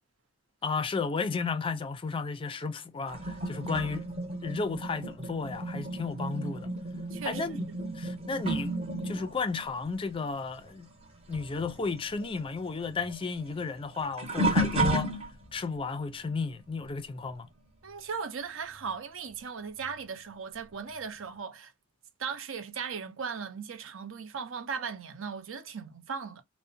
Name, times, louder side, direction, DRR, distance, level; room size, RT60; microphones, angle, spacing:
voice 1, 0.6-4.1 4.4-6.7 7.2-7.7 7.9-8.8 9.0-10.9 11.3-15.1 15.5-17.5, left 4 dB, 25° left, 0.3 m, -33 dB
sound 1, 3.1-11.1 11.3-15.7 16.3-16.6 18.8-18.9 19.8-19.9, right 1 dB, 30° right, 0.8 m, -33 dB
voice 2, 7.1-7.6 17.8-21.7 22.2-26.4, right 6 dB, 65° right, 0.5 m, -37 dB
2.6 x 2.1 x 2.5 m
head